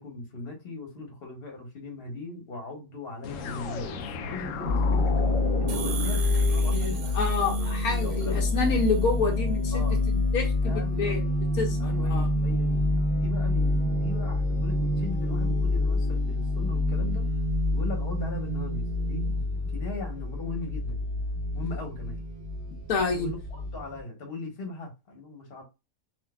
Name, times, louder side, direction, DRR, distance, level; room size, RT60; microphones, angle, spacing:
voice 1, 0.0-5.1 5.6-7.1 8.0-8.8 9.7-10.0 10.6-11.2 11.8-17.3 17.7-19.4 19.7-21.0 21.5-22.2 23.1-25.6, left 2 dB, 45° left, 1.3 m, -39 dB
sound 1, 3.2-7.2, left 5 dB, 70° left, 0.9 m, -35 dB
sound 2, 4.6-24.0, left 2 dB, 40° right, 1.0 m, -27 dB
sound 3, 5.7-9.3, right 9 dB, 70° right, 1.1 m, -41 dB
voice 2, 6.7-11.2 11.6-12.3 22.9-23.3, left 4 dB, 85° left, 1.4 m, -28 dB
3.8 x 2.7 x 2.2 m
omnidirectional pair, 1.5 m